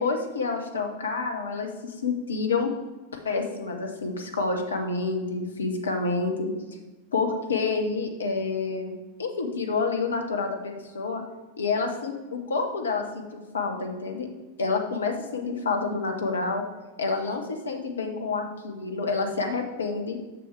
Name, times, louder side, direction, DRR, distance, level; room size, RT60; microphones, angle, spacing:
voice 1, 0.0-2.7 3.1-6.5 7.1-8.9 9.2-11.2 11.6-13.2 13.5-14.3 14.6-16.6 17.0-20.2, left 4 dB, 70° left, 3 dB, 1.0 m, -28 dB
6.4 x 6.2 x 4.8 m, 1.2 s
figure-of-eight pair, 90°, 0 cm